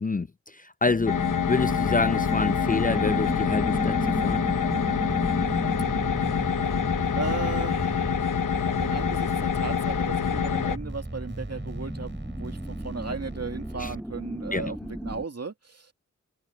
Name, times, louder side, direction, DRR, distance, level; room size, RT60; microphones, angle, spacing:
voice 1, 0.0-4.4 13.8-13.9 14.5-14.6, left 3 dB, 25° left, 0.5 m, -27 dB
sound 1, 0.8-15.2, equal, ahead, 1.0 m, -35 dB
sound 2, 1.1-10.8, left 7 dB, 90° left, 1.0 m, -26 dB
sound 3, 1.6-14.0, right 2 dB, 35° right, 4.9 m, -39 dB
voice 2, 7.1-8.2 8.8-15.9, right 4 dB, 55° right, 2.5 m, -36 dB
wide cardioid pair, 55°, 31 cm